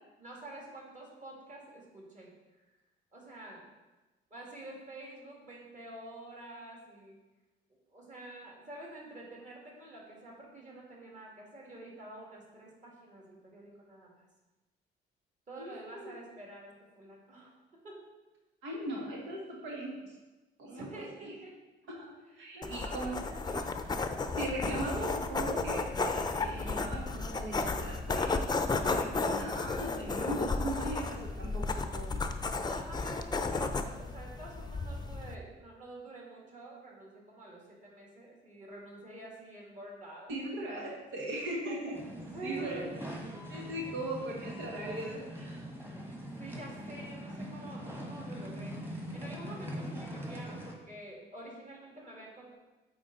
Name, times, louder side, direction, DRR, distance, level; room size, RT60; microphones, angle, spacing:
voice 1, 0.2-2.3 3.1-3.7 4.3-7.2 7.9-14.3 15.5-18.0 20.6-21.6 22.3-23.6 28.7-29.2 32.6-40.3 40.6-41.0 42.1-42.9 46.4-52.5, right 2 dB, 40° right, -3 dB, 2.4 m, -48 dB
voice 2, 15.6-16.1 18.6-20.1 20.6-21.3 22.0-23.6 24.4-28.5 28.9-32.2 40.3-42.0 42.4-42.8 43.5-45.6, right 1 dB, 90° right, -2 dB, 1.4 m, -39 dB
sound 1, 22.6-35.3, left 3 dB, 20° left, 0.5 m, -33 dB
sound 2, 41.9-50.7, equal, 10° right, 1.5 m, -42 dB
8.4 x 4.6 x 4.1 m, 1.1 s
cardioid pair, 90°, 20 cm